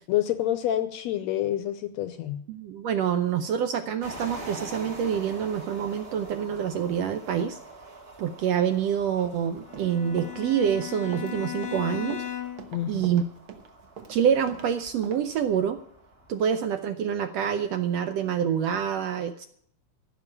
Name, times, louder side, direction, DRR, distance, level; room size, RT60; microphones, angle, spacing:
voice 1, 0.1-2.4 12.7-13.1, left 12 dB, 75° left, 10 dB, 1.7 m, -28 dB
voice 2, 2.5-7.6 8.2-12.2 12.9-13.2 14.1-15.8 16.3-19.5, right 8 dB, 75° right, 9 dB, 1.6 m, -26 dB
sound 1, 4.0-16.5, right 2 dB, 25° right, 1.5 m, -45 dB
Run, 9.6-14.7 15.0-15.2, right 7 dB, 60° right, 1.5 m, -42 dB
Bowed string instrument, 9.7-12.8, left 10 dB, 45° left, 1.3 m, -36 dB
14.5 x 6.1 x 9.9 m, 0.65 s
omnidirectional pair, 3.5 m